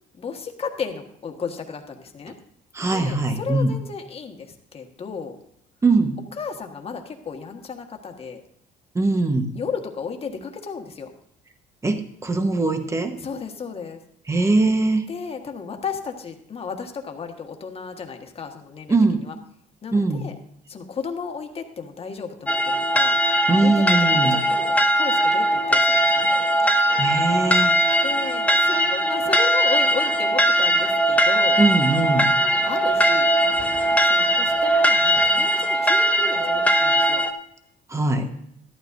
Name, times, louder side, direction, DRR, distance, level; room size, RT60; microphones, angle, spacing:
voice 1, 0.2-2.3 2.8-5.4 6.4-8.4 9.5-11.1 13.2-14.0 15.1-19.0 19.2-19.3 19.8-20.3 20.7-23.2 23.6-26.4 28.0-31.6 32.7-33.3 34.1-37.2, left 5 dB, 35° left, 4 dB, 1.4 m, -34 dB
voice 2, 2.7-3.8 5.8-6.2 8.9-9.5 11.8-13.2 14.3-15.1 18.9-19.3 19.9-20.3 23.5-24.4 27.0-27.7 31.6-32.3 37.9-38.3, right 2 dB, 15° right, 7 dB, 1.1 m, -21 dB
sound 1, 22.5-37.3, right 1 dB, 10° left, 0.7 m, -20 dB
13.5 x 12.0 x 2.6 m, 0.72 s
cardioid pair, 110°, 17 cm